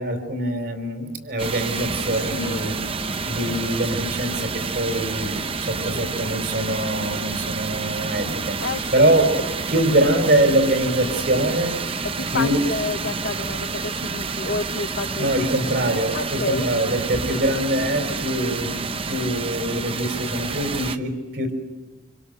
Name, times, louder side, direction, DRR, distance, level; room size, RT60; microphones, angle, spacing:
voice 1, 0.0-2.7 3.2-5.3 5.6-8.6 8.9-11.8 12.3-12.6 15.2-21.5, right 1 dB, 60° right, 6 dB, 4.2 m, -23 dB
sound 1, 1.4-21.0, right 4 dB, 30° right, 0.8 m, -29 dB
voice 2, 2.3-2.6 5.8-6.1 8.6-9.0 12.2-15.3 16.1-16.7, left 3 dB, 60° left, 9 dB, 1.1 m, -29 dB
27.0 x 25.5 x 6.7 m, 1.2 s
head